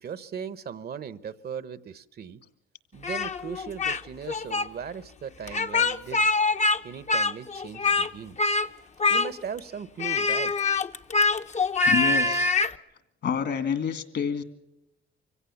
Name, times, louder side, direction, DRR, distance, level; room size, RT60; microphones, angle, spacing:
voice 1, 0.0-2.4 2.9-6.3 6.8-8.4 9.1-10.5, right 7 dB, 50° right, 16 dB, 1.0 m, -38 dB
Speech, 3.0-4.0 4.3-4.7 5.5-6.8 7.1-8.1 8.4-8.7 9.0-9.6 10.0-12.7, left 3 dB, 35° left, 0.8 m, -24 dB
voice 2, 11.9-12.5 13.2-14.4, left 7 dB, 60° left, 10 dB, 2.1 m, -28 dB
24.5 x 16.5 x 7.1 m, 0.89 s
cardioid pair, 90°, 20 cm